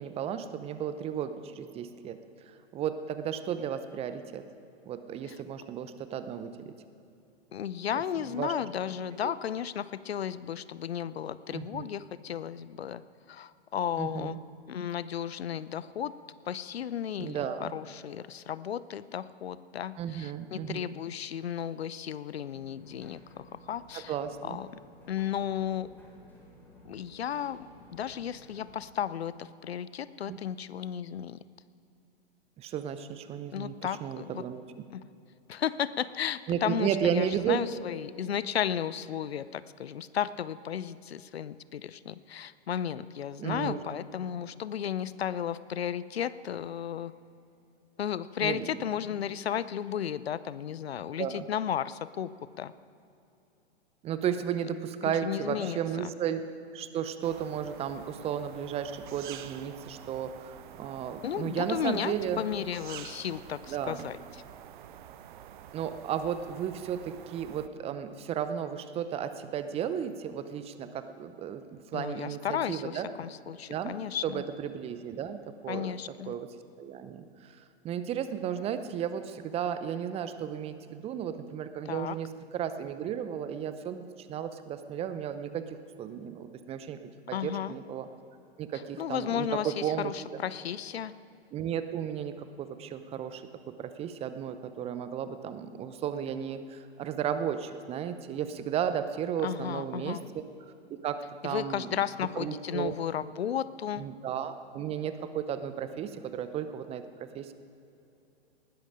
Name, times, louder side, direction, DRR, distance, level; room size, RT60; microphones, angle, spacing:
voice 1, 0.0-2.2 2.7-4.5 4.9-6.7 8.3-8.5 9.2-9.3 11.5-11.9 14.0-14.4 17.2-17.7 20.0-20.9 23.9-24.6 30.3-30.4 32.6-34.6 36.5-37.6 43.4-43.8 48.4-48.8 51.2-51.5 54.0-56.4 56.7-62.4 63.7-64.1 65.7-73.1 73.7-74.0 74.2-76.0 76.3-88.1 88.6-90.1 91.5-100.4 100.9-102.0 102.4-102.9 104.0-107.5, right 9 dB, 20° right, 11 dB, 0.7 m, -34 dB
voice 2, 7.5-13.0 13.3-14.4 14.7-16.1 16.4-24.2 24.4-24.8 25.1-25.9 26.8-31.4 33.5-34.4 34.9-35.0 35.5-47.1 48.0-52.3 52.6-52.7 55.2-55.8 61.2-64.4 71.9-74.4 75.7-76.3 81.9-82.2 87.3-87.7 89.0-91.1 99.4-100.2 101.4-104.1, left 9 dB, 70° left, 17 dB, 0.6 m, -34 dB
sound 1, 22.5-28.8, equal, 5° left, 4.5 m, -55 dB
sound 2, 57.2-67.7, right 11 dB, 50° right, 0.8 m, -48 dB
19.5 x 13.0 x 5.0 m, 2.8 s
figure-of-eight pair, 110°, 32 cm